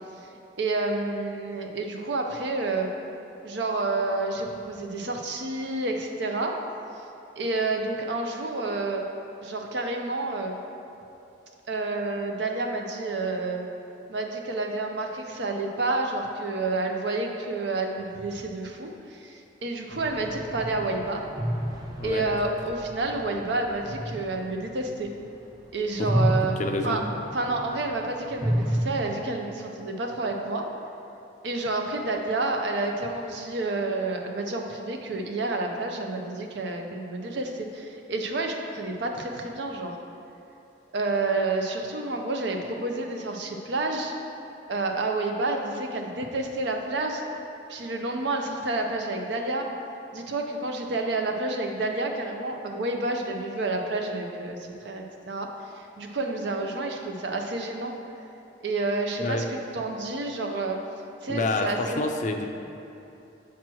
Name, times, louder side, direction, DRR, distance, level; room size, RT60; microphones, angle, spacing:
voice 1, 0.6-2.9 3.4-6.6 7.4-9.0 9.4-10.6 11.7-13.7 14.1-21.2 22.0-25.1 25.7-26.6 26.8-27.0 27.3-30.7 31.4-40.0 40.9-44.1 44.7-47.2 47.7-49.7 50.1-57.9 58.6-60.8 61.2-62.0, right 2 dB, 60° right, 3 dB, 0.6 m, -29 dB
sound 1, 19.9-25.5 25.9-28.8, equal, 20° right, 0.6 m, -31 dB
voice 2, 26.6-27.0 59.2-59.5 61.3-62.5, left 2 dB, 40° left, 4 dB, 0.4 m, -28 dB
7.2 x 3.0 x 6.0 m, 2.9 s
head